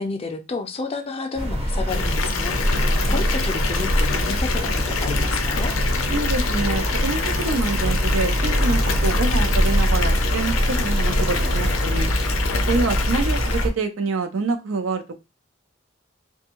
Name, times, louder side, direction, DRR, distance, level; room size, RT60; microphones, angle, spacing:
voice 1, 0.0-2.7 3.1-5.7, left 3 dB, 30° left, 6 dB, 0.4 m, -30 dB
sound 1, 1.4-13.7, equal, 30° right, 0.6 m, -23 dB
Water tap faucet / Bathtub (filling or washing) / Fill (with liquid), 1.9-13.7, left 5 dB, 90° left, 0.4 m, -27 dB
Meow, 2.5-7.2, equal, 65° right, 1.0 m, -30 dB
voice 2, 2.8-3.2 6.1-12.1 12.7-15.1, right 3 dB, 85° right, 7 dB, 0.5 m, -26 dB
2.6 x 2.2 x 2.9 m, 0.26 s
head